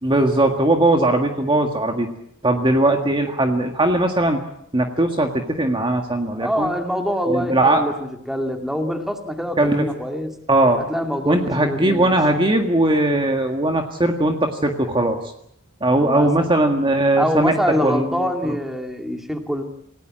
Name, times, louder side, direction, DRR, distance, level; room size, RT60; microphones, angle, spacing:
voice 1, 0.0-2.1 2.4-4.4 4.7-6.7 7.2-7.9 9.6-9.8 10.5-10.8 11.3-15.2 15.8-17.5 17.8-18.1, right 1 dB, 25° right, 4 dB, 1.8 m, -19 dB
voice 2, 6.4-10.3 10.8-12.1 16.0-16.5 17.2-19.6, equal, ahead, 4 dB, 2.4 m, -25 dB
28.0 x 17.5 x 7.6 m, 0.73 s
head